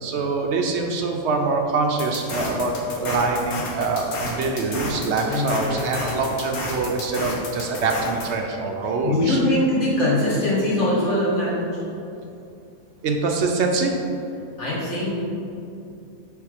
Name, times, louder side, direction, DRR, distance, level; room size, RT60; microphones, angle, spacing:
voice 1, 0.0-9.4 13.0-14.0, right 3 dB, 65° right, 2 dB, 0.7 m, -24 dB
sound 1, 2.0-8.3, left 2 dB, 85° left, 1.6 m, -31 dB
voice 2, 5.2-6.0 9.0-11.6 14.6-15.1, left 1 dB, 55° left, -8 dB, 2.1 m, -22 dB
7.0 x 3.7 x 4.9 m, 2.7 s
omnidirectional pair, 1.5 m